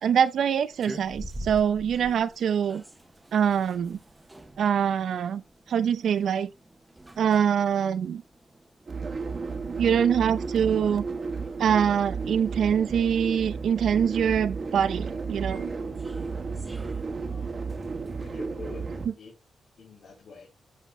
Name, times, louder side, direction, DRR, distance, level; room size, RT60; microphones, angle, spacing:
voice 1, 0.0-2.8 3.3-4.0 4.6-5.4 5.7-6.5 7.2-8.2 9.8-11.0 11.6-15.7, right 8 dB, 75° right, 0.6 m, -24 dB
sound 1, 0.7-18.3, equal, 15° right, 1.0 m, -48 dB
sound 2, 8.9-19.1, right 4 dB, 45° right, 1.4 m, -33 dB
voice 2, 17.2-17.5 18.2-19.4 19.8-20.5, left 4 dB, 75° left, 3.7 m, -46 dB
9.5 x 5.9 x 3.1 m
cardioid pair, 105°, 0 cm